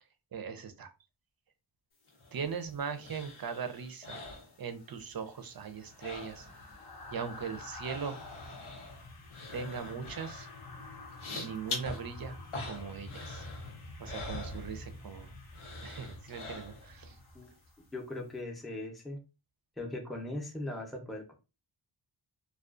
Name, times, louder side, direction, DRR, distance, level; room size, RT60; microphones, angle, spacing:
voice 1, 0.3-0.9 2.3-4.2 4.6-6.5 7.1-8.2 9.5-10.5 11.4-12.4 12.6-13.4 14.0-15.3 15.8-17.2, right 6 dB, 50° right, 9 dB, 0.5 m, -39 dB
sound 1, 2.1-5.1 5.4-6.8 7.0-15.2 15.5-17.1 17.5-17.6, left 2 dB, 80° left, 0.9 m, -44 dB
sound 2, 4.6-17.9 18.2-18.4, left 2 dB, 50° left, 0.7 m, -48 dB
voice 2, 17.9-19.2 19.8-21.3, left 1 dB, ahead, 1 dB, 0.6 m, -39 dB
2.3 x 2.3 x 2.4 m, 0.29 s
wide cardioid pair, 60°, 48 cm